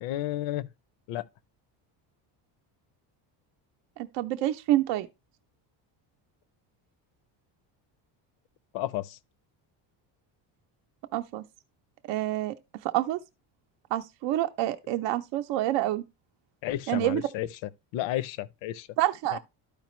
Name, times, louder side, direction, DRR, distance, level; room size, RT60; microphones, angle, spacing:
voice 1, 0.0-0.7 1.1-1.2 8.7-9.2 16.6-18.9 19.3-19.4, left 14 dB, 75° left, 0.6 m, -32 dB
voice 2, 4.0-5.1 11.1-11.4 12.1-12.5 12.8-13.2 13.9-16.0 16.9-17.2 19.0-19.4, right 14 dB, 70° right, 0.6 m, -27 dB
12.0 x 5.0 x 3.0 m
cardioid pair, 175°, 45 cm